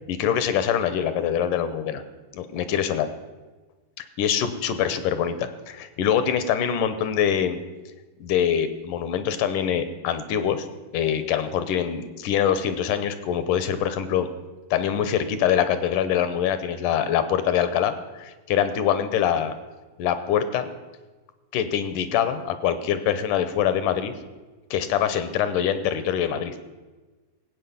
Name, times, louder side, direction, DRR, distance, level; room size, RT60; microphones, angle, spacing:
voice 1, 0.1-2.0 2.3-3.1 4.0-7.6 8.2-10.7 10.9-14.3 14.7-17.9 18.2-19.5 20.0-20.7 21.5-24.1 24.7-26.6, left 9 dB, 75° left, 11 dB, 2.4 m, -24 dB
17.5 x 8.6 x 7.0 m, 1.2 s
omnidirectional pair, 3.8 m